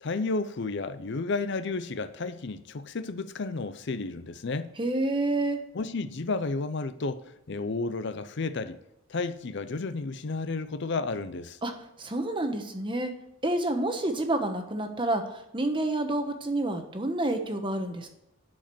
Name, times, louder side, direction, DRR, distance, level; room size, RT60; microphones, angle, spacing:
voice 1, 0.0-4.7 5.7-8.8 9.1-11.6, left 3 dB, 55° left, 0.6 m, -32 dB
voice 2, 4.8-5.6 11.6-11.7 12.0-13.1 13.4-18.1, right 2 dB, 25° right, 1.1 m, -28 dB
11.5 x 5.1 x 7.6 m
head